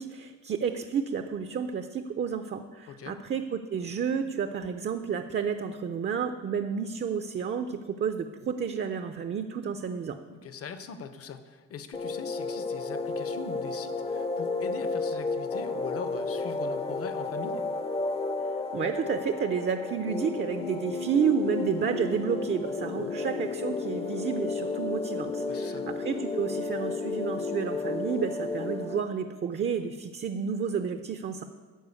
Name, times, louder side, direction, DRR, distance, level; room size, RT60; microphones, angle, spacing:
voice 1, 0.0-10.2 18.7-31.4, right 6 dB, 35° right, 8 dB, 0.5 m, -31 dB
voice 2, 2.9-3.2 10.3-17.7 23.0-23.2 25.5-25.9, left 6 dB, 50° left, 10 dB, 0.8 m, -41 dB
sound 1, 11.9-29.0, left 3 dB, 20° left, 0.5 m, -32 dB
12.0 x 5.0 x 8.2 m, 1.5 s
cardioid pair, 145°, 30 cm